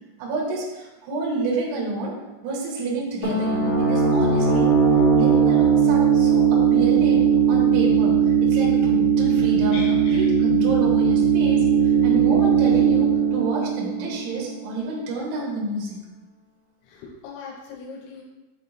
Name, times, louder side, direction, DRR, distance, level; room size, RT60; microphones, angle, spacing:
voice 1, 0.2-2.2 2.4-4.7 5.1-11.6 12.0-16.0, right 3 dB, 90° right, -4 dB, 1.8 m, -29 dB
sound 1, 3.2-14.7, right 7 dB, 50° left, 2.2 m, -19 dB
voice 2, 9.7-10.3 16.9-18.2, left 4 dB, 90° left, -1 dB, 3.4 m, -39 dB
7.3 x 3.2 x 4.2 m, 1.1 s
omnidirectional pair, 5.8 m